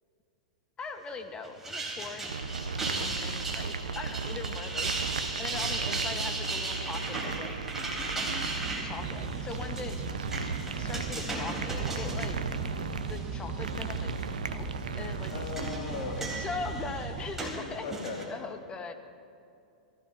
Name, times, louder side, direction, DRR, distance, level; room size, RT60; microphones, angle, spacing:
voice 1, 0.8-2.3 3.0-7.6 8.8-10.0 10.8-12.4 13.1-14.2 14.4-14.7 14.9-15.3 15.6-17.9 18.3-18.9, left 4 dB, 25° left, 6 dB, 1.4 m, -40 dB
sound 1, 1.4-13.2 13.6-14.2 15.0-18.2, right 2 dB, 10° right, 4.1 m, -37 dB
sound 2, 2.3-15.7, right 5 dB, 90° right, 0.7 m, -37 dB
sound 3, 8.6-17.3, right 4 dB, 35° right, 1.7 m, -38 dB
voice 2, 15.3-16.4 17.8-18.3, left 4 dB, 55° left, 0 dB, 2.6 m, -38 dB
23.0 x 15.5 x 2.9 m, 2.5 s
hypercardioid pair, 105°, 4 cm